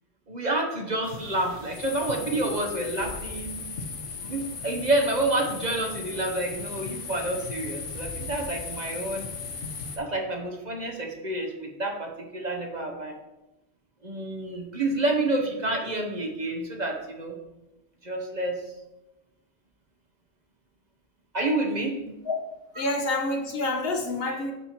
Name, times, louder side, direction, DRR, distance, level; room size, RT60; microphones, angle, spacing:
voice 1, 0.3-3.5 4.2-9.3 10.0-13.2 14.0-17.3 18.0-18.6 21.3-22.0 22.8-22.9, right 2 dB, 40° right, 2 dB, 1.0 m, -28 dB
sound 1, 1.0-10.0, left 5 dB, 80° left, 1.3 m, -37 dB
voice 2, 22.8-24.5, left 2 dB, 55° left, 3 dB, 1.1 m, -28 dB
8.9 x 4.3 x 4.4 m, 0.97 s
omnidirectional pair, 1.2 m